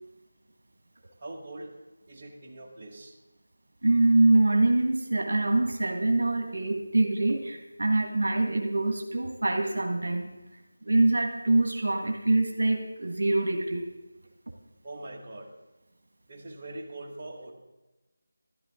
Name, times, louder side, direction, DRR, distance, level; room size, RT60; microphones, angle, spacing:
voice 1, 1.2-1.7 2.1-3.1 14.8-15.5 16.3-17.5, right 2 dB, 35° right, -2 dB, 1.7 m, -42 dB
voice 2, 3.8-10.3 10.8-13.9, right 2 dB, 75° right, 3 dB, 1.6 m, -24 dB
12.5 x 11.5 x 3.7 m, 1.1 s
figure-of-eight pair, 170°, 0 cm